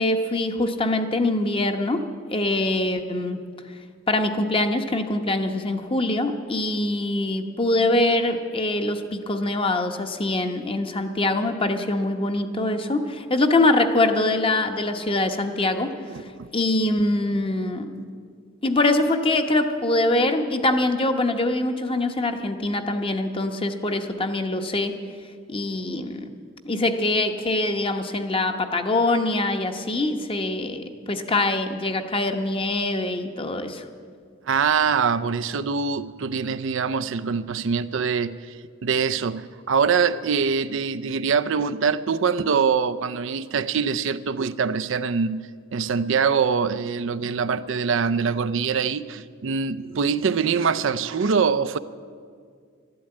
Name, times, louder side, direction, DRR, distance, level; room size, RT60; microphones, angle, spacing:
voice 1, 0.0-2.0 2.3-3.4 4.1-15.9 16.5-17.9 18.6-25.0 25.5-26.3 26.6-33.8, left 2 dB, 25° left, 1.0 m, -23 dB
voice 2, 16.1-16.5 34.5-38.4 38.8-51.8, right 6 dB, 65° right, 0.5 m, -24 dB
12.5 x 12.0 x 8.8 m
head